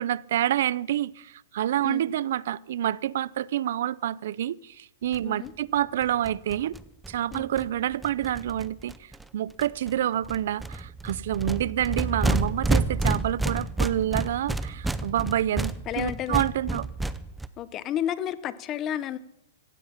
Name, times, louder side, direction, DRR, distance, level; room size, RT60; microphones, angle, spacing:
voice 1, 0.0-6.8 7.1-16.9, right 11 dB, 65° right, 0.5 m, -28 dB
sound 1, 5.1-5.2 5.5-5.6 5.8-5.9 6.0-9.2 9.6-9.9 10.2-17.5, right 2 dB, 5° right, 0.6 m, -30 dB
voice 2, 15.9-16.5 17.6-19.2, left 11 dB, 25° left, 0.8 m, -31 dB
16.0 x 15.0 x 5.7 m
hypercardioid pair, 155°, 0 cm